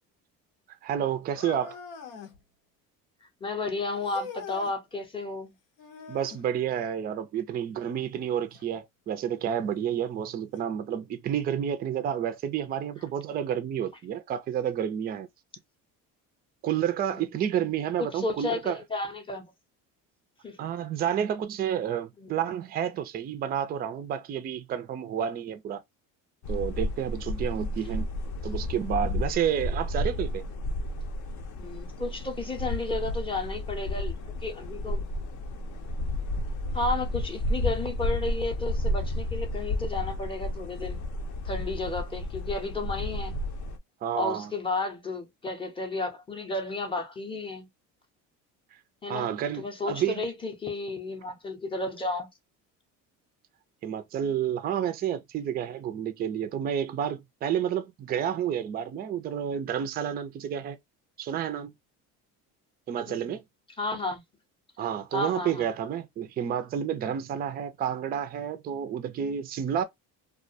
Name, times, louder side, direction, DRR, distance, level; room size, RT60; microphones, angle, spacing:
voice 1, 0.7-1.8 6.1-15.3 16.6-18.8 20.6-25.8 26.5-28.1 28.4-30.4 44.0-44.5 49.1-50.2 53.8-60.8 61.2-61.7 62.9-63.4 64.8-69.8, right 9 dB, 30° right, 0.3 m, -30 dB
sound 1, 1.3-2.4 4.0-4.8 5.8-6.5 8.5-8.6 9.5-9.6 10.6-10.7, left 5 dB, 85° left, 0.8 m, -43 dB
voice 2, 3.4-5.5 17.0-17.3 18.0-19.5 20.4-20.6 22.2-22.4 31.6-35.0 36.7-41.0 41.4-43.4 44.2-47.7 49.0-49.3 49.6-52.3 63.1-63.3 63.8-64.2 65.1-65.7, left 2 dB, 15° left, 0.6 m, -32 dB
sound 2, 26.4-43.8, left 1 dB, 60° left, 0.6 m, -32 dB
2.3 x 2.1 x 2.5 m
cardioid pair, 130°, 34 cm